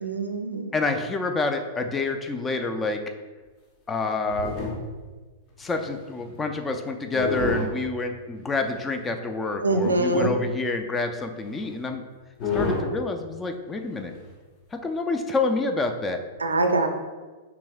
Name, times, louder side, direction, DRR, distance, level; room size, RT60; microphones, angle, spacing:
voice 1, 0.0-0.7 9.6-10.3 16.4-16.9, right 2 dB, 80° right, 5 dB, 0.5 m, -23 dB
voice 2, 0.7-3.0 3.9-4.6 5.6-12.0 12.5-14.1 14.7-16.2, left 3 dB, 15° left, 6 dB, 0.4 m, -28 dB
sound 1, 4.0-5.1 5.6-6.5 7.1-7.7 8.7-8.8 9.7-10.4 11.5-11.6 11.8-11.9 12.4-12.9 14.1-14.3, left 4 dB, 40° left, 1.2 m, -29 dB
5.8 x 3.5 x 2.3 m, 1.3 s
figure-of-eight pair, 100°, 0 cm